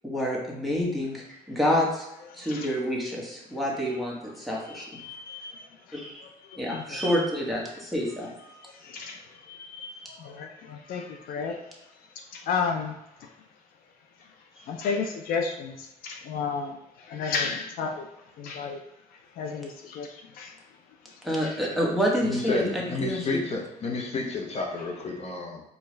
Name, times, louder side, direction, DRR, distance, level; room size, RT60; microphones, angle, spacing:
voice 1, 0.0-2.1 2.4-4.9 5.9-6.2 6.6-8.3 21.2-22.6 23.0-23.2, equal, ahead, -4 dB, 1.1 m, -28 dB
voice 2, 2.3-2.7 4.7-6.0 6.4-7.0 8.5-11.6 12.3-12.9 13.2-13.3 14.6-18.1 18.4-18.8 19.4-20.6 21.4-21.5, left 5 dB, 70° left, 3 dB, 0.5 m, -33 dB
voice 3, 22.2-25.6, left 3 dB, 45° left, 1 dB, 0.8 m, -31 dB
4.6 x 2.3 x 3.2 m, 0.88 s
cardioid pair, 95°, 16 cm